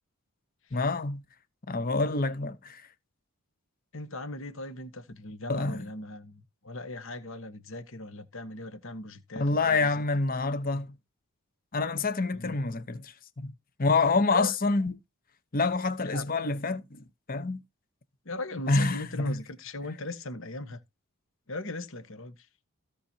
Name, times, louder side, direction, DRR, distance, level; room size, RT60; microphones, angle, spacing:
voice 1, 0.7-1.2 1.7-2.8 5.5-5.8 9.4-10.9 11.7-13.5 13.8-14.9 15.5-17.6 18.7-19.4, left 3 dB, 40° left, 1.0 m, -27 dB
voice 2, 3.9-10.0 12.3-12.6 14.3-14.5 16.0-16.5 18.2-20.8 21.5-22.5, left 2 dB, 60° left, 1.3 m, -39 dB
16.5 x 5.8 x 2.8 m
head